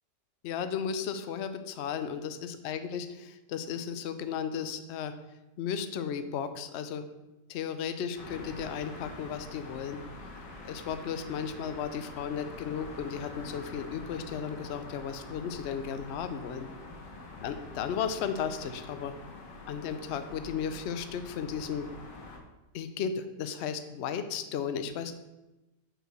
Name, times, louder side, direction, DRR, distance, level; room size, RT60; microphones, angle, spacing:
voice 1, 0.4-5.1 5.6-7.1 7.5-10.0 10.6-16.7 17.4-19.1 19.7-21.9 22.7-25.1, left 7 dB, 70° left, 10 dB, 0.6 m, -35 dB
sound 1, 8.1-22.4, left 2 dB, 55° left, 1.6 m, -45 dB
6.1 x 4.7 x 6.6 m, 1.0 s
omnidirectional pair, 1.9 m